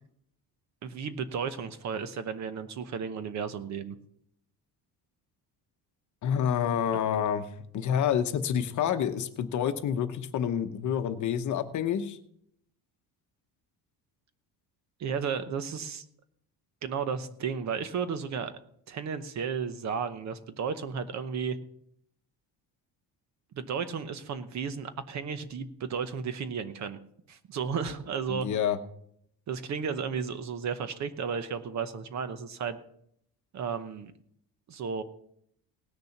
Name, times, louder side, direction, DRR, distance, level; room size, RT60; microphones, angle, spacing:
voice 1, 0.8-3.9 15.0-16.0 16.8-18.5 18.9-21.6 23.5-27.0 27.3-28.5 29.5-32.8 33.5-34.1 34.7-35.0, right 6 dB, 45° right, 11 dB, 0.9 m, -33 dB
voice 2, 6.2-7.5 7.7-12.2 28.3-28.8, left 8 dB, 50° left, 9 dB, 1.0 m, -28 dB
18.0 x 6.9 x 5.8 m, 0.69 s
cardioid pair, 175°, 39 cm